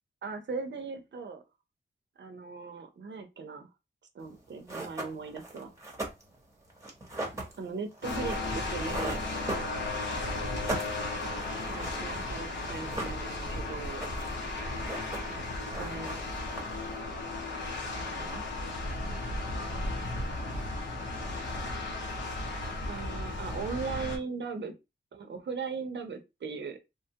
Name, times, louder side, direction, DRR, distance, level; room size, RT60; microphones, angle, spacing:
voice 1, 0.2-1.4 2.2-3.7 4.1-5.7 7.6-9.2 11.7-14.0 15.3-15.5 15.8-16.2 18.0-18.4 22.9-24.7 25.1-26.8, right 4 dB, 65° right, 5 dB, 0.6 m, -38 dB
sound 1, 4.3-4.4 4.7-10.1 10.4-12.3 12.6-13.5 13.8-14.4 14.7-15.4 15.7-16.9, right 2 dB, 15° right, 0.8 m, -38 dB
sound 2, 8.0-24.2, left 2 dB, 70° left, 0.8 m, -35 dB
3.0 x 2.2 x 2.7 m, 0.25 s
wide cardioid pair, 135°, 20 cm